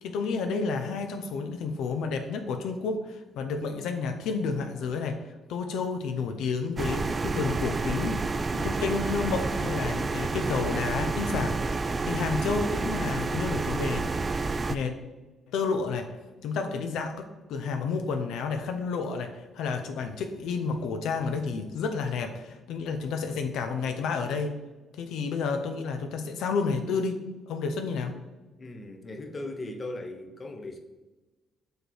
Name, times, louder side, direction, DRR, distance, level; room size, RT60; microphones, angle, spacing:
voice 1, 0.0-5.2 5.5-8.2 8.5-14.3 14.7-15.0 15.5-16.1 16.4-24.6 25.0-28.1, left 5 dB, 85° left, 6 dB, 0.5 m, -30 dB
sound 1, 6.8-14.8, right 3 dB, 30° right, 0.3 m, -29 dB
voice 2, 28.6-30.8, left 2 dB, 35° left, 4 dB, 0.9 m, -38 dB
6.5 x 3.4 x 4.5 m, 1.2 s
cardioid pair, 90°, 0 cm